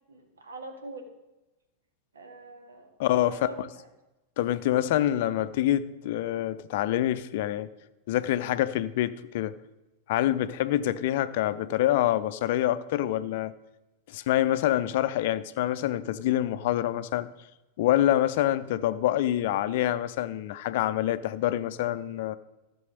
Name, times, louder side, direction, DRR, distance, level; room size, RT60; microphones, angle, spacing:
voice 1, 0.1-1.1 2.1-2.9 3.2-3.8, right 2 dB, 70° right, 4 dB, 2.0 m, -43 dB
voice 2, 3.0-3.7 4.4-7.7 8.1-9.5 10.1-13.5 14.1-17.3 17.8-22.4, left 13 dB, 50° left, 14 dB, 0.5 m, -26 dB
14.0 x 6.9 x 5.2 m, 1.0 s
figure-of-eight pair, 90°, 0 cm